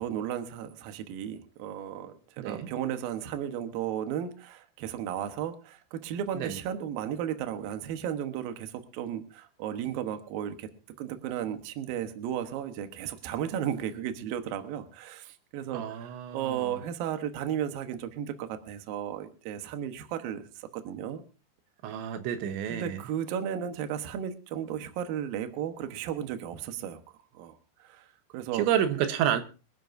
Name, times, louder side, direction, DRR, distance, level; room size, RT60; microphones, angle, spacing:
voice 1, 0.0-10.7 11.0-21.2 22.7-27.0 27.3-28.1 28.3-28.7, right 9 dB, 65° right, 2.6 m, -34 dB
voice 2, 2.4-2.7 6.4-6.6 15.7-16.8 21.8-23.0 28.5-29.4, right 9 dB, 90° right, 3.4 m, -29 dB
24.5 x 11.0 x 2.6 m
omnidirectional pair, 5.1 m